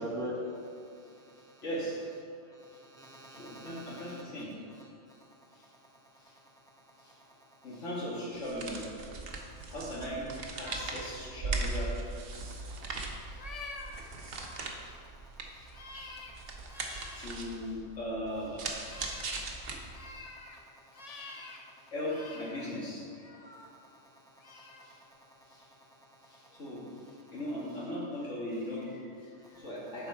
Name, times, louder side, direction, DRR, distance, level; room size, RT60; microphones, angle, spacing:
voice 1, 0.0-1.6 2.5-4.2 5.1-5.3 5.8-7.7 9.3-9.7 12.4-17.2 19.2-21.9 23.4-26.6 27.2-27.3 29.4-29.6, equal, 5° left, -4 dB, 1.0 m, -48 dB
voice 2, 1.6-2.0 3.0-4.7 5.5-5.7 6.2-6.4 7.0-7.2 7.6-9.0 9.7-10.3 10.6-12.0 13.2-13.4 13.9-14.1 14.8-15.0 15.5-15.7 16.4-16.6 17.0-18.7 19.2-19.3 19.8-20.0 21.9-23.1 24.8-25.0 25.5-25.7 26.2-30.1, equal, 65° left, -5 dB, 2.2 m, -39 dB
sound 1, 8.3-20.2, right 3 dB, 50° right, 1.0 m, -39 dB
sound 2, 10.6-10.9 13.3-13.9 14.3-14.7 15.7-16.4 16.7-17.3 18.8-19.3 19.9-20.6 20.9-21.6 22.0-22.7 23.1-23.7 24.4-24.9, left 3 dB, 35° left, 0.7 m, -47 dB
11.0 x 4.6 x 4.4 m, 2.4 s
omnidirectional pair, 1.4 m